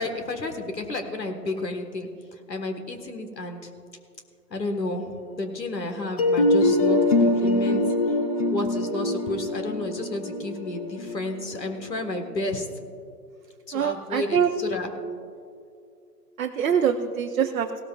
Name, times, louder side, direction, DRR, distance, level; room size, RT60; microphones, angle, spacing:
voice 1, 0.0-3.7 4.5-7.8 8.5-12.7 13.7-14.9, left 2 dB, 85° left, 5 dB, 1.7 m, -31 dB
sound 1, 6.2-12.0, left 2 dB, 25° left, 0.6 m, -23 dB
voice 2, 13.7-14.5 16.4-17.7, right 8 dB, 60° right, 4 dB, 0.8 m, -24 dB
17.0 x 13.0 x 2.4 m, 2.4 s
figure-of-eight pair, 135°, 49 cm